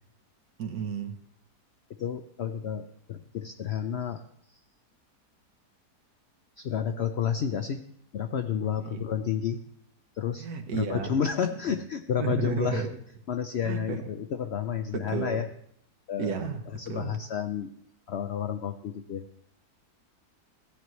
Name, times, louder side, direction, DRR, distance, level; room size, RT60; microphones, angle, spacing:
voice 1, 0.6-1.2 8.9-9.1 10.4-11.1 12.2-12.9 13.6-14.1 14.9-15.4 16.2-17.2, right 6 dB, 70° right, 1.5 m, -32 dB
voice 2, 2.0-4.2 6.6-7.8 8.1-9.6 10.2-10.5 10.7-12.9 13.3-15.4 16.1-16.3 16.8-17.7 18.1-19.2, left 8 dB, 70° left, 0.6 m, -30 dB
15.0 x 9.5 x 3.1 m
omnidirectional pair, 1.7 m